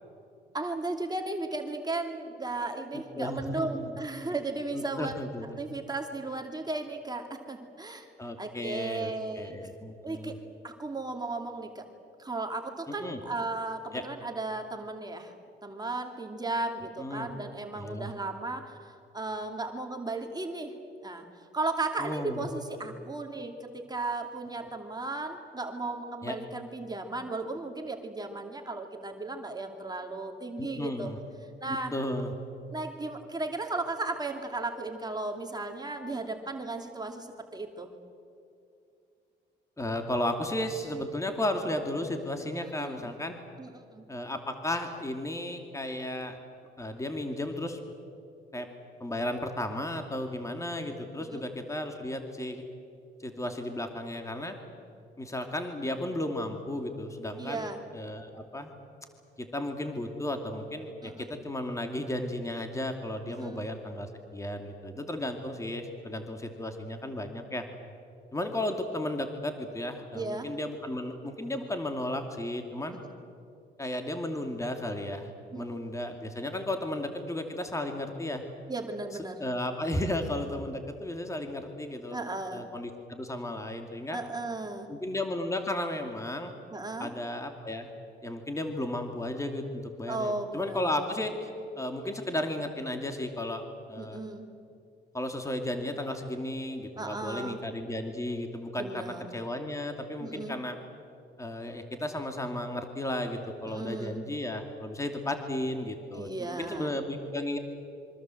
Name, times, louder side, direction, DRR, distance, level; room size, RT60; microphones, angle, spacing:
voice 1, 0.5-5.1 5.6-8.1 8.4-9.5 10.0-10.4 10.6-11.8 12.2-15.3 15.6-20.7 21.0-21.2 21.5-31.1 31.6-31.9 32.7-37.3 37.5-37.9 42.8-43.1 43.6-44.0 51.3-51.4 57.4-57.8 61.0-61.3 63.3-63.6 70.1-70.5 75.5-75.8 78.7-79.4 82.1-82.7 84.1-84.9 86.7-87.1 90.1-91.0 94.0-94.5 97.0-97.6 98.8-99.3 100.2-100.6 103.6-104.2 106.1-106.9, right 2 dB, 20° right, 3 dB, 2.6 m, -35 dB
voice 2, 3.2-4.0 4.7-5.6 8.2-10.3 12.9-13.2 13.9-14.0 17.0-17.3 17.7-18.1 22.0-22.5 26.2-26.3 30.6-31.2 31.7-32.3 39.8-43.4 44.1-46.4 46.8-47.8 48.5-48.7 49.0-52.6 53.2-54.6 55.2-58.7 59.4-67.6 68.3-73.0 73.8-75.3 75.6-78.4 79.4-82.2 82.5-84.2 84.9-86.5 87.0-87.9 88.2-91.5 91.8-94.2 95.1-100.8 101.4-107.6, left 1 dB, 15° left, 4 dB, 2.6 m, -34 dB
26.5 x 24.5 x 7.8 m, 2.6 s
cardioid pair, 90°, 20 cm